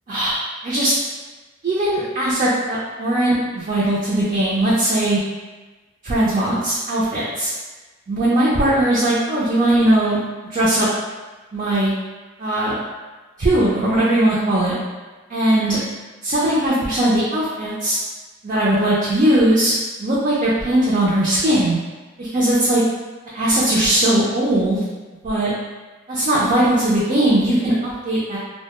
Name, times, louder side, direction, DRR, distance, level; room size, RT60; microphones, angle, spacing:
voice 1, 1.6-5.2 6.0-7.5 8.1-10.2 10.5-10.9 11.5-11.9 12.4-12.7 13.4-14.7 15.3-15.8 16.2-18.0 18.4-19.7 20.0-21.8 22.2-22.8 23.3-24.8 25.2-25.5 26.1-27.7 28.0-28.4, right 1 dB, 40° right, -7 dB, 0.4 m, -19 dB
2.2 x 2.1 x 2.9 m, 1.3 s
head